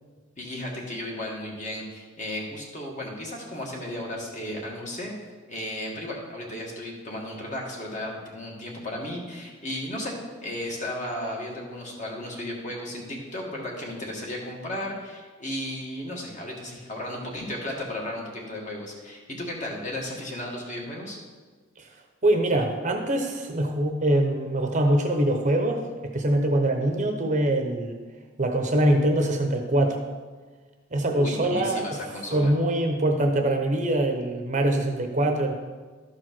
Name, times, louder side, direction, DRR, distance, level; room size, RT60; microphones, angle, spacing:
voice 1, 0.4-5.1 5.5-10.2 10.4-21.2 31.1-32.5, left 1 dB, 35° left, -2 dB, 1.9 m, -34 dB
voice 2, 22.2-25.8 26.1-28.0 28.4-30.0 30.9-32.0 32.3-35.5, right 1 dB, 35° right, 4 dB, 0.8 m, -23 dB
12.5 x 4.8 x 6.0 m, 1.4 s
head